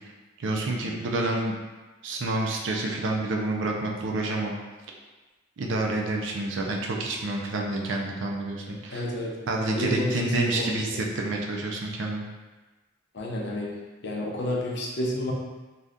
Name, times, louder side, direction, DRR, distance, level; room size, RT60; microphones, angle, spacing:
voice 1, 0.4-1.5 2.0-4.6 5.6-9.0 9.5-12.2, right 2 dB, 65° right, 0 dB, 0.4 m, -28 dB
voice 2, 8.6-9.3 9.7-11.0 13.1-13.7 14.0-15.3, left 1 dB, 60° left, -2 dB, 0.6 m, -30 dB
2.7 x 2.4 x 3.4 m, 1.2 s
head